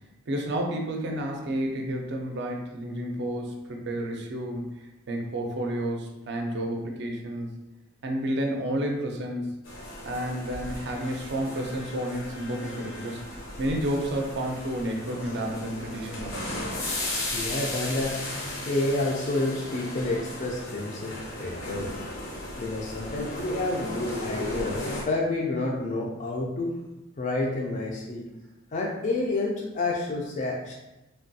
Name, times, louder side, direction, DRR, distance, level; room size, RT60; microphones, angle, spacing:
voice 1, 0.3-4.7 5.1-7.5 8.0-9.6 10.0-13.2 13.6-16.9, right 1 dB, 55° right, 1 dB, 0.4 m, -31 dB
sound 1, 9.6-25.0, left 1 dB, 70° left, 0.7 m, -36 dB
voice 2, 17.3-21.9 22.6-26.7 27.2-28.2 28.7-30.7, left 2 dB, 35° left, -2 dB, 0.3 m, -29 dB
3.2 x 2.2 x 2.6 m, 0.97 s
head